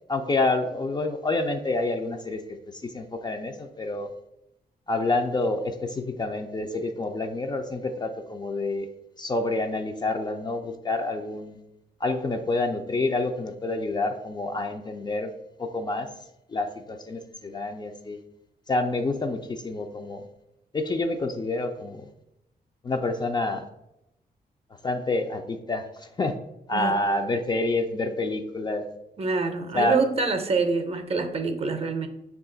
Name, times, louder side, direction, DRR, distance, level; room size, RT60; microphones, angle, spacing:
voice 1, 0.1-4.1 4.9-8.9 9.2-11.6 12.0-15.3 15.6-16.1 16.5-18.2 18.7-20.2 20.7-22.1 22.8-23.6 24.8-26.3 26.7-28.8 29.7-30.0, left 2 dB, 25° left, 6 dB, 0.3 m, -28 dB
voice 2, 29.2-32.1, right 4 dB, 40° right, 7 dB, 0.5 m, -26 dB
5.6 x 2.4 x 3.7 m, 0.85 s
wide cardioid pair, 110°, 16 cm